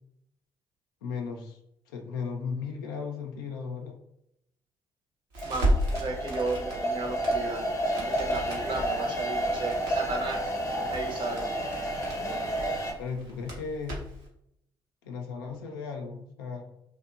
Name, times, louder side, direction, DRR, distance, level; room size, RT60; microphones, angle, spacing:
voice 1, 1.0-1.6 1.9-4.0 13.0-14.0 15.0-16.6, left 5 dB, 90° left, 2 dB, 0.4 m, -36 dB
Crackle, 5.3-14.3, equal, 85° right, 0.7 m, -35 dB
sound 1, 5.4-12.9, right 1 dB, 30° left, 0.6 m, -31 dB
voice 2, 5.4-10.5 10.9-11.5, right 3 dB, 45° right, 2 dB, 0.7 m, -34 dB
2.7 x 2.1 x 2.4 m, 0.78 s
hypercardioid pair, 45°, 11 cm